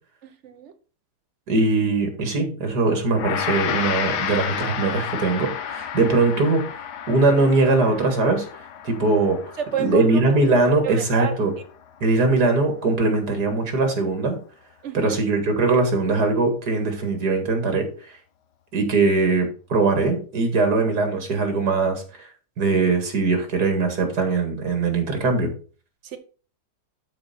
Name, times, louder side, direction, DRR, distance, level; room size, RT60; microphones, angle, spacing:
voice 1, 0.2-0.7 9.6-10.2 10.6-11.4 14.8-15.2 26.0-26.2, right 8 dB, 50° right, 1.3 m, -30 dB
voice 2, 1.5-6.7 7.1-8.5 8.8-9.4 9.8-11.5 12.0-14.4 14.9-18.1 18.7-22.3 22.6-25.5, right 3 dB, 75° right, 2.5 m, -21 dB
Gong, 3.1-12.5, left 8 dB, 85° left, 1.4 m, -32 dB
12.0 x 4.3 x 4.3 m
omnidirectional pair, 1.7 m